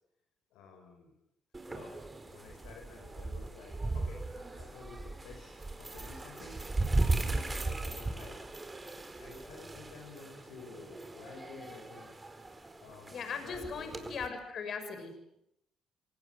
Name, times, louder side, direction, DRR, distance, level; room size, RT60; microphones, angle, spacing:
voice 1, 0.5-1.1 1.7-2.0 2.3-8.4 9.2-12.1 12.8-14.2, left 4 dB, 70° left, 2 dB, 5.1 m, -51 dB
sound 1, 1.5-14.3, right 2 dB, 25° right, 4.4 m, -37 dB
voice 2, 13.1-15.4, left 5 dB, 55° left, 8 dB, 6.5 m, -39 dB
26.5 x 26.0 x 7.9 m, 0.79 s
hypercardioid pair, 45°, 0 cm